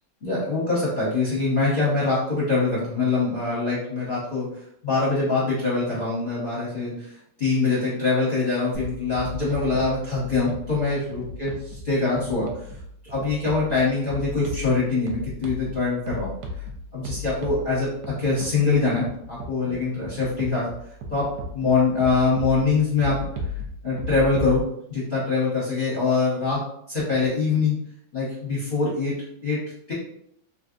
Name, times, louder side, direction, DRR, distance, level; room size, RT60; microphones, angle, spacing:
voice 1, 0.2-4.5 4.8-11.5 11.8-12.5 13.1-16.3 16.9-20.7 21.1-21.3 21.5-23.2 23.8-26.6 26.9-27.8 28.1-29.1 29.4-29.6 29.9-30.0, left 3 dB, 35° left, -8 dB, 0.9 m, -24 dB
sound 1, 8.7-24.6, left 2 dB, 70° right, 1.0 m, -36 dB
3.3 x 2.7 x 2.5 m, 0.72 s
omnidirectional pair, 1.9 m